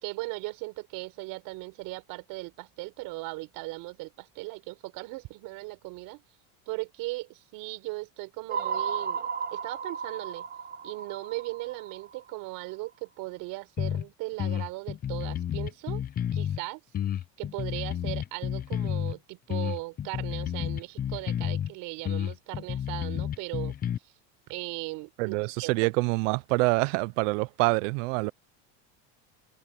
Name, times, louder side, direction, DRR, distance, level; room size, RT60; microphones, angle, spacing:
voice 1, 0.0-6.2 6.7-10.5 10.8-16.0 16.3-16.8 17.4-23.8 24.0-24.1 24.5-25.7, right 22 dB, 65° right, 5.3 m, -38 dB
sound 1, 8.5-12.7, right 7 dB, 25° right, 1.4 m, -34 dB
sound 2, 13.8-14.0 14.4-16.6 16.9-19.2 19.5-21.7 22.0-24.0, left 10 dB, 25° left, 0.6 m, -30 dB
voice 2, 25.2-28.3, right 26 dB, 90° right, 0.6 m, -26 dB
open air
cardioid pair, 140°, 36 cm